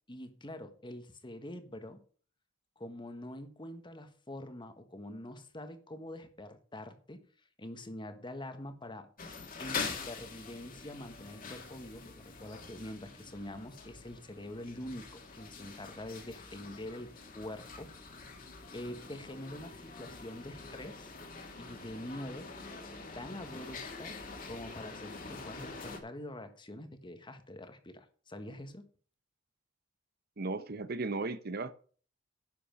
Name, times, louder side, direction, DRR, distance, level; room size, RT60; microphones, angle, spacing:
voice 1, 0.1-2.0 2.8-7.3 7.6-17.9 18.7-21.1 21.6-22.5 23.1-24.2 24.4-28.9, left 1 dB, 25° left, 1.4 m, -45 dB
sound 1, 9.2-26.0, left 4 dB, 45° left, 2.3 m, -45 dB
voice 2, 30.4-31.7, right 3 dB, 55° right, 0.8 m, -35 dB
10.5 x 7.0 x 5.2 m
head